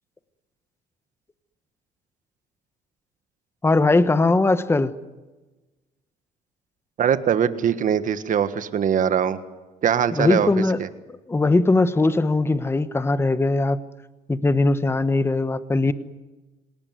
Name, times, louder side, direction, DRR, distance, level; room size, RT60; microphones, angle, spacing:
voice 1, 3.6-4.9 10.1-10.8 11.3-13.8 14.3-15.9, left 2 dB, 15° left, 13 dB, 1.2 m, -20 dB
voice 2, 7.0-9.4 9.8-10.5 10.8-10.9, right 8 dB, 50° right, 11 dB, 1.6 m, -21 dB
28.0 x 18.5 x 9.5 m, 1.2 s
cardioid pair, 110°, 17 cm